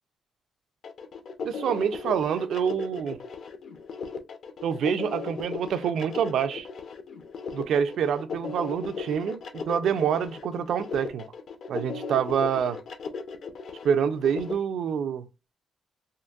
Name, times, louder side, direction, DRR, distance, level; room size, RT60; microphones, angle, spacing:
sound 1, 0.8-14.5, left 5 dB, 55° left, 0.6 m, -37 dB
voice 1, 1.4-3.2 4.6-6.7 7.5-11.2 11.7-12.8 13.8-15.2, right 7 dB, 65° right, 0.4 m, -26 dB
3.7 x 2.5 x 2.3 m
cardioid pair, 160°, 0 cm